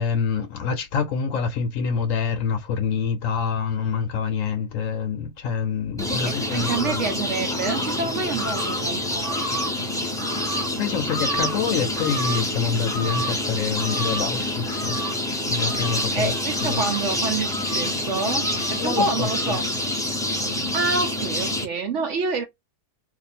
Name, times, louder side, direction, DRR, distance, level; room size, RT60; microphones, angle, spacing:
voice 1, 0.0-7.1 10.8-15.0 15.5-16.3 16.6-16.8 18.8-19.3, left 6 dB, 65° left, 1.0 m, -26 dB
sound 1, 6.0-21.6, left 1 dB, 5° left, 0.4 m, -26 dB
voice 2, 6.5-9.4 16.1-19.6 20.7-22.4, right 4 dB, 60° right, 0.8 m, -27 dB
2.7 x 2.6 x 4.2 m
omnidirectional pair, 1.7 m